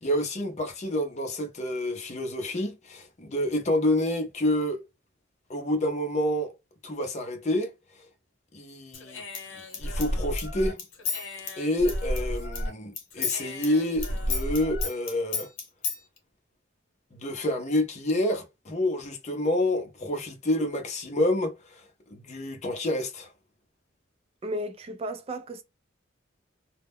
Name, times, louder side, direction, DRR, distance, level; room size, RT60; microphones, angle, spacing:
voice 1, 0.0-4.8 5.5-6.5 6.8-7.7 8.5-9.2 9.6-10.8 11.6-15.5 17.1-21.8 22.1-23.3, left 1 dB, 35° left, 0.6 m, -28 dB
Human voice / Scissors, 8.9-12.7 13.0-16.0, left 2 dB, 85° left, 0.9 m, -31 dB
voice 2, 24.4-25.6, equal, 30° right, 0.4 m, -34 dB
2.2 x 2.1 x 3.4 m
head